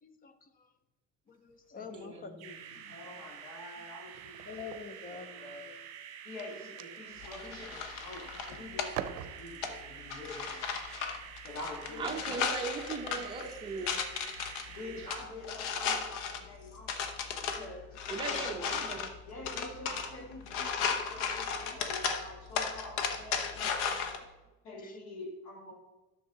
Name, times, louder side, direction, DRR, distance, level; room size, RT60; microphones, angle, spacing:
voice 1, 0.0-0.7 1.3-3.1 4.5-5.8 11.0-11.5 11.9-12.4 24.8-25.0, left 5 dB, 25° left, 10 dB, 0.7 m, -48 dB
sound 1, 1.3-2.0 2.5-2.8 3.2-5.6 6.1-8.4 8.8-9.9 10.8-11.1 12.2-12.4 13.2-13.5 14.0-14.1 14.5-15.5, right 12 dB, 75° right, 0.6 m, -47 dB
voice 2, 1.9-2.4 12.0-14.0 16.9-17.0 18.1-19.2, right 4 dB, 15° right, 1 dB, 0.8 m, -38 dB
sound 2, 2.4-15.2, right 9 dB, 50° right, 1.2 m, -48 dB
voice 3, 2.9-4.4 4.9-5.7 6.2-10.6 11.4-12.3 14.7-17.0 17.4-18.8 19.3-24.2 24.6-25.8, left 2 dB, 55° left, -1 dB, 2.6 m, -46 dB
sound 3, 7.2-24.2, left 6 dB, 90° left, 1.1 m, -36 dB
10.5 x 6.6 x 3.9 m, 1.1 s
cardioid pair, 135°, 33 cm